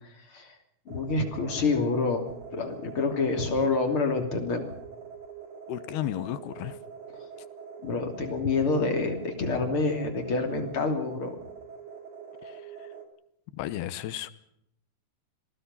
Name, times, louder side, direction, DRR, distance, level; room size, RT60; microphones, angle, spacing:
voice 1, 0.0-0.5 0.9-2.2 2.5-4.7 7.8-11.3, left 3 dB, 35° left, 4 dB, 3.3 m, -27 dB
sound 1, 0.9-13.1, right 6 dB, 45° right, 3.5 m, -44 dB
voice 2, 5.7-6.8 12.4-12.9 13.5-14.3, left 12 dB, 75° left, 14 dB, 2.7 m, -34 dB
26.5 x 19.0 x 5.5 m, 0.75 s
omnidirectional pair, 5.2 m